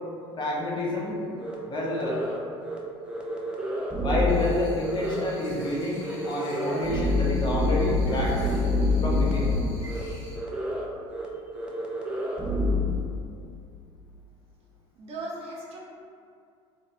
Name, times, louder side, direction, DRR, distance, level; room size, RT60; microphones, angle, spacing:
voice 1, 0.4-1.2 1.7-2.2 4.0-8.5 9.0-9.6, left 1 dB, 30° left, -4 dB, 0.7 m, -28 dB
sound 1, 1.4-1.5 1.9-2.4 2.6-2.8 3.1-4.5 4.8-5.3 5.6-5.7 6.0-9.6 9.9-10.0 10.3-10.9 11.1-11.3 11.5-12.8, left 1 dB, 5° right, 0.5 m, -27 dB
sound 2, 4.3-10.4, left 1 dB, 70° left, 1.0 m, -49 dB
voice 2, 15.0-15.8, right 2 dB, 45° right, -4 dB, 0.7 m, -37 dB
3.1 x 2.6 x 2.6 m, 2.4 s
hypercardioid pair, 70°, 14 cm